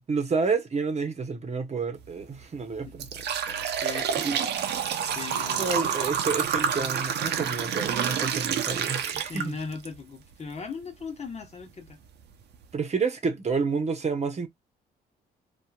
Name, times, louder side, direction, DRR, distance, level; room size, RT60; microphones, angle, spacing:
voice 1, 0.0-3.1 3.5-3.6 4.2-4.4 5.6-9.5 12.7-14.5, right 4 dB, 35° right, 1.0 m, -29 dB
sound 1, 2.0-2.2 2.7-9.9 10.3-10.4 11.3-11.4 11.9-12.0 12.4-12.6, right 8 dB, 65° right, 0.7 m, -28 dB
voice 2, 3.8-4.7 5.0-5.7 9.1-12.0, left 4 dB, 35° left, 1.1 m, -38 dB
2.8 x 2.5 x 2.3 m
supercardioid pair, 70°, 18 cm